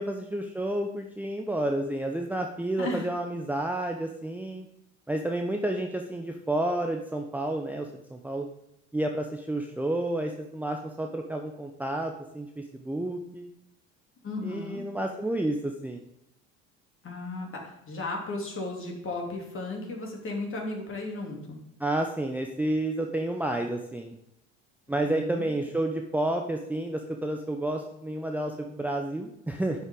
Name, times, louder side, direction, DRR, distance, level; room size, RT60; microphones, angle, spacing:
voice 1, 0.0-4.7 5.1-8.5 8.9-13.5 14.4-16.0 21.8-24.2 24.9-29.8, right 1 dB, 5° right, 3 dB, 0.8 m, -30 dB
voice 2, 14.2-14.8 17.0-21.6 25.0-25.4, left 2 dB, 35° left, 0 dB, 3.2 m, -35 dB
11.0 x 8.1 x 3.9 m, 0.81 s
figure-of-eight pair, 60°, 36 cm